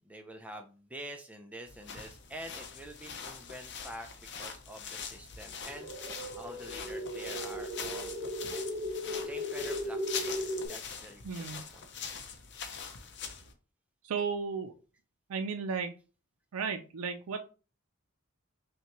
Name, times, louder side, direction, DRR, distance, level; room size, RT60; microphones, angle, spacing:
voice 1, 0.0-6.0 6.3-8.6 9.2-11.5 11.7-11.9, right 1 dB, 5° right, 4 dB, 0.4 m, -47 dB
sound 1, 1.7-13.5, left 6 dB, 55° left, 0.6 m, -43 dB
sound 2, 5.7-10.7, equal, 35° right, 0.9 m, -37 dB
voice 2, 11.2-11.6 14.0-14.7 15.3-15.9 16.5-17.5, right 5 dB, 85° right, 5 dB, 0.4 m, -34 dB
5.6 x 2.2 x 2.9 m, 0.35 s
head